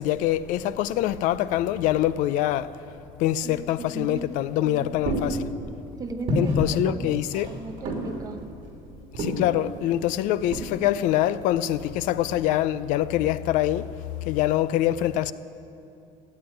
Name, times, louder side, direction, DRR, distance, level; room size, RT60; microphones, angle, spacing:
voice 1, 0.0-2.7 3.2-5.5 6.3-7.5 9.2-13.8 14.3-15.3, left 13 dB, 65° left, 0.5 m, -24 dB
voice 2, 3.9-4.3 4.6-5.3 6.0-6.6 6.9-7.2 7.5-8.4, right 3 dB, 25° right, 0.8 m, -36 dB
sound 1, 4.1-12.5, equal, 45° right, 3.0 m, -32 dB
14.5 x 8.9 x 8.9 m
cardioid pair, 165°, 14 cm